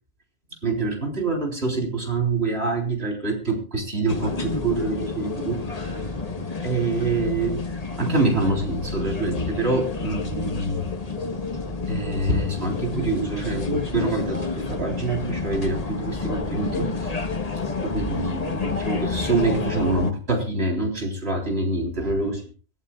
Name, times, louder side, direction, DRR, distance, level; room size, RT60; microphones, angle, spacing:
voice 1, 0.6-6.0 6.6-7.6 8.0-10.9 11.9-17.2 17.8-22.4, right 3 dB, 70° right, 1 dB, 4.0 m, -26 dB
sound 1, 4.1-20.1, left 3 dB, 35° left, 1.4 m, -29 dB
26.5 x 14.5 x 2.4 m, 0.35 s
omnidirectional pair, 1.1 m